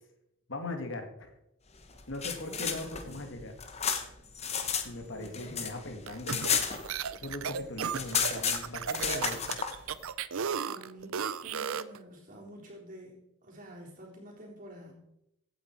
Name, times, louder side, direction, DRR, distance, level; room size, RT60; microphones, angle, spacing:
voice 1, 0.5-1.3 2.1-3.6 4.8-6.7 7.2-9.6, left 2 dB, 55° left, 5 dB, 2.0 m, -39 dB
sound 1, 1.9-4.9 5.2-7.3 7.6-7.7 7.9-9.7, left 7 dB, 30° left, 1.1 m, -32 dB
voice 2, 2.4-3.2 5.1-5.6 10.6-14.9, equal, 35° right, -3 dB, 3.7 m, -48 dB
sound 2, 6.1-12.0, right 7 dB, 70° right, 0.6 m, -34 dB
16.0 x 9.0 x 4.6 m, 0.83 s
head